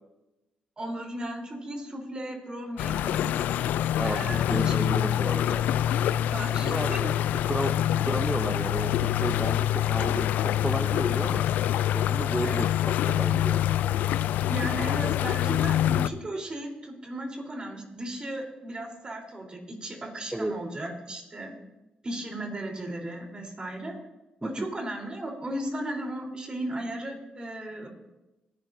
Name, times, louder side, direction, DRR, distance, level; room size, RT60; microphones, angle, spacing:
voice 1, 0.8-3.3 4.0-4.7 6.3-7.1 12.4-12.7 14.5-21.5 22.0-23.9 24.4-27.9, right 1 dB, 35° right, 1 dB, 3.9 m, -35 dB
sound 1, 2.8-16.1, left 12 dB, 85° left, 0.3 m, -26 dB
voice 2, 3.9-5.7 6.6-7.1 7.4-11.5 11.9-13.6 20.3-20.6 24.4-24.7, right 1 dB, 10° right, 8 dB, 0.6 m, -33 dB
20.0 x 12.0 x 2.7 m, 0.99 s
cardioid pair, 70°, 3 cm